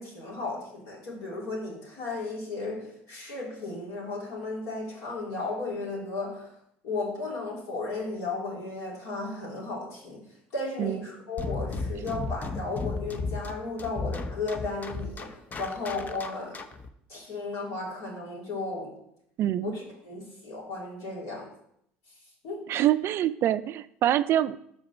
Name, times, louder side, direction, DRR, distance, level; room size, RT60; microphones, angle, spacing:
voice 1, 0.0-6.5 6.8-10.2 10.5-16.7 17.1-19.0 19.6-21.5 22.4-22.7, left 3 dB, 60° left, -3 dB, 3.2 m, -35 dB
sound 1, 11.4-16.9, left 3 dB, 30° left, 0.7 m, -34 dB
voice 2, 19.4-19.7 22.7-24.6, right 12 dB, 50° right, 14 dB, 0.3 m, -25 dB
5.2 x 4.9 x 6.0 m, 0.72 s
hypercardioid pair, 70°, 6 cm